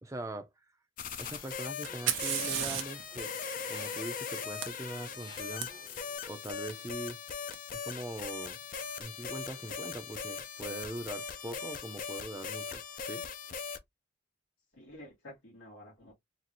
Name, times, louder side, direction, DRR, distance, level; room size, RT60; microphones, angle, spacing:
voice 1, 0.0-0.5 1.2-3.3 3.7-5.7 6.3-7.2 7.7-8.6 9.0-13.3, right 1 dB, 15° right, 0.5 m, -42 dB
sound 1, 1.0-13.8, left 6 dB, 45° left, 0.5 m, -40 dB
Mechanisms, 1.2-6.2, left 2 dB, 20° left, 0.8 m, -55 dB
Fire, 1.8-5.6 7.5-7.6 8.5-8.9, right 10 dB, 80° right, 0.7 m, -37 dB
voice 2, 12.5-12.8 14.8-16.1, left 1 dB, 85° left, 1.9 m, -52 dB
3.9 x 2.5 x 2.9 m
head